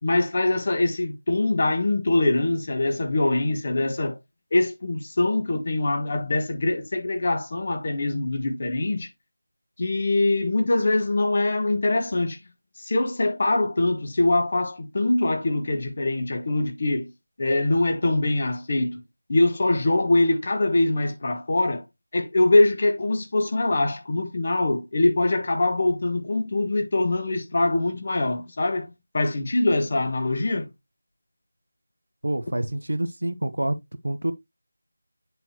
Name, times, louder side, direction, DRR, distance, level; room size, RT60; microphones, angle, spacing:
voice 1, 0.0-4.2 4.5-9.1 9.8-12.4 12.8-17.1 17.4-19.0 19.3-21.8 22.1-28.9 29.1-30.7, left 2 dB, 40° left, 1.3 m, -23 dB
voice 2, 32.2-33.8 34.0-34.3, right 1 dB, 75° right, 1.0 m, -27 dB
7.6 x 5.6 x 2.9 m
figure-of-eight pair, 165°, 0 cm